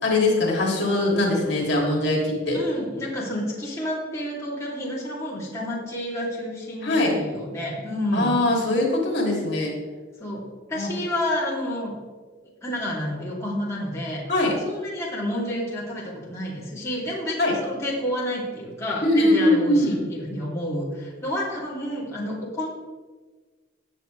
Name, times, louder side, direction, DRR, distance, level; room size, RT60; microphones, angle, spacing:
voice 1, 0.0-2.6 6.8-7.1 8.1-9.7 10.7-10.9 14.3-14.5 17.4-17.5 19.0-20.0, left 1 dB, 60° left, -2 dB, 3.0 m, -21 dB
voice 2, 2.5-8.3 10.2-10.4 10.7-11.9 12.6-14.2 14.7-22.7, left 1 dB, 15° left, -7 dB, 3.0 m, -29 dB
19.5 x 7.4 x 3.4 m, 1.4 s
head